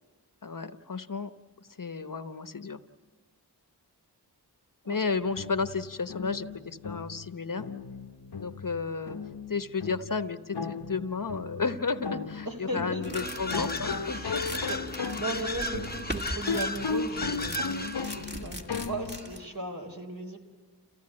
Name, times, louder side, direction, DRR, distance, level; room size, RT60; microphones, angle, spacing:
voice 1, 0.4-1.3 1.6-2.8 4.9-7.7 8.4-9.2 9.5-14.6 17.6-18.0, left 4 dB, 55° left, 10 dB, 1.0 m, -33 dB
sound 1, 5.2-19.4, left 5 dB, 80° left, 0.9 m, -37 dB
voice 2, 12.5-13.3 14.1-14.4 14.7-20.4, right 1 dB, 55° right, 2 dB, 4.0 m, -37 dB
sound 2, 13.0-19.5, equal, 25° right, 1.8 m, -40 dB
sound 3, 13.1-18.3, left 1 dB, 25° left, 0.9 m, -35 dB
29.0 x 16.0 x 8.7 m, 1.5 s
wide cardioid pair, 40°, 39 cm